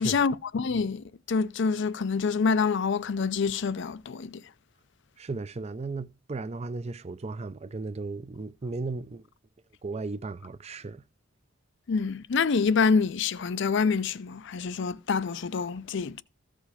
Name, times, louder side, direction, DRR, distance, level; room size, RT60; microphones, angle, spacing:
voice 1, 0.0-4.4 11.9-16.2, left 5 dB, 65° left, 0.5 m, -26 dB
voice 2, 5.2-9.2 9.8-11.0, right 3 dB, 35° right, 0.5 m, -35 dB
14.5 x 5.1 x 5.0 m
head